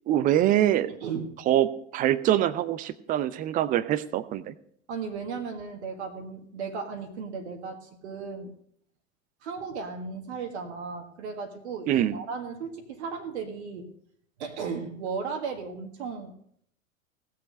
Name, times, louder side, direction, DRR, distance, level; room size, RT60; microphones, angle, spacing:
voice 1, 0.1-0.9 1.5-4.5 11.9-12.2, right 12 dB, 20° right, 17 dB, 0.5 m, -24 dB
voice 2, 0.9-1.3 4.9-8.5 9.4-13.9 14.4-16.3, right 5 dB, 55° right, 4 dB, 1.7 m, -35 dB
17.5 x 6.7 x 5.2 m, 0.67 s
figure-of-eight pair, 90°, 40 cm